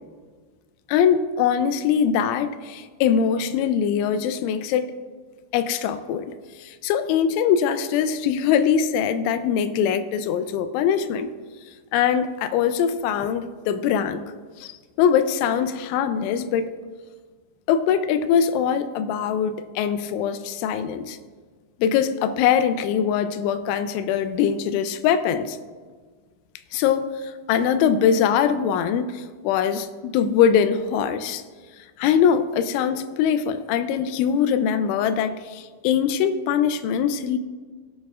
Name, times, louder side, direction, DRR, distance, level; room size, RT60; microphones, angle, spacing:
voice 1, 0.9-4.9 5.5-6.3 6.6-11.3 11.9-14.2 14.6-14.7 15.0-16.7 17.7-21.2 21.8-25.6 26.7-31.4 32.0-37.4, left 8 dB, 90° left, 10 dB, 3.0 m, -22 dB
17.0 x 9.7 x 2.4 m, 1.5 s
omnidirectional pair, 5.4 m